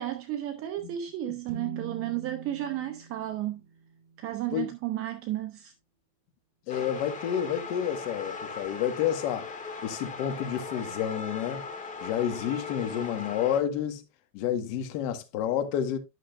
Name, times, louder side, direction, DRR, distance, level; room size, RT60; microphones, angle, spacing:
voice 1, 0.0-3.6 4.2-5.7, right 13 dB, 30° right, 0.6 m, -33 dB
sound 1, 1.5-5.0, right 4 dB, 60° right, 1.9 m, -45 dB
voice 2, 6.7-9.5 9.8-11.6 12.0-14.0 14.3-16.0, left 9 dB, 55° left, 1.8 m, -29 dB
sound 2, 6.7-13.6, left 4 dB, 15° left, 1.8 m, -39 dB
11.5 x 6.2 x 2.5 m
supercardioid pair, 145°, 48 cm